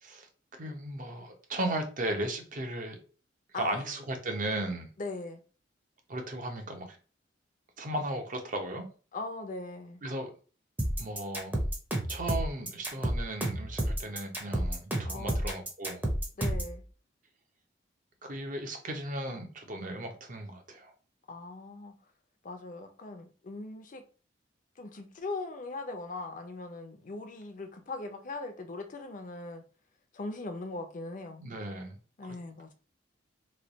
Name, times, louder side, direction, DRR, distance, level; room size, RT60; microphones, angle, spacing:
voice 1, 0.0-3.0 3.5-4.9 6.1-7.0 7.8-8.9 10.0-10.3 11.0-11.6 12.1-16.1 18.2-20.9 31.4-32.3, right 1 dB, 45° right, 0.7 m, -36 dB
voice 2, 3.5-3.9 5.0-5.4 9.1-10.0 15.1-15.4 16.4-16.8 21.3-21.9 22.4-24.0 24.8-29.6 30.1-31.4 32.2-32.7, left 3 dB, 45° left, 0.5 m, -40 dB
sound 1, 10.8-16.8, right 1 dB, 10° right, 0.6 m, -30 dB
3.2 x 2.3 x 3.9 m
head